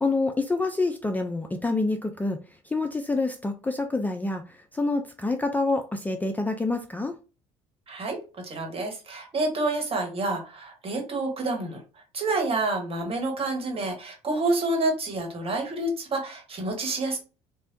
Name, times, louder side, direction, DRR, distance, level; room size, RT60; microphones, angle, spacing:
voice 1, 0.0-2.4 2.6-7.1, left 3 dB, 10° left, 0.4 m, -27 dB
voice 2, 7.9-17.2, right 2 dB, 40° right, 1.3 m, -28 dB
3.2 x 2.2 x 2.6 m
hypercardioid pair, 65°, 16 cm